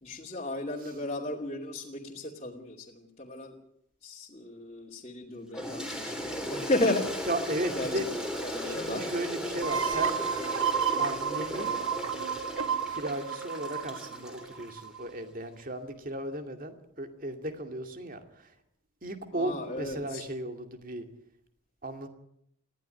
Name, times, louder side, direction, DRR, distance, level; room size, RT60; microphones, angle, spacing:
voice 1, 0.0-3.5 4.0-7.3 7.8-7.9 8.5-9.0 19.3-20.2, left 1 dB, 30° left, -3 dB, 2.7 m, -34 dB
Toilet flush, 5.5-14.9, equal, 5° right, 3.5 m, -37 dB
voice 2, 7.3-8.1 8.6-10.2 11.0-11.8 12.9-18.5 19.0-21.1 21.8-22.1, right 1 dB, 40° right, 6 dB, 2.4 m, -36 dB
sound 1, 9.6-15.1, right 7 dB, 70° right, 1.8 m, -31 dB
20.5 x 15.0 x 9.1 m, 0.74 s
head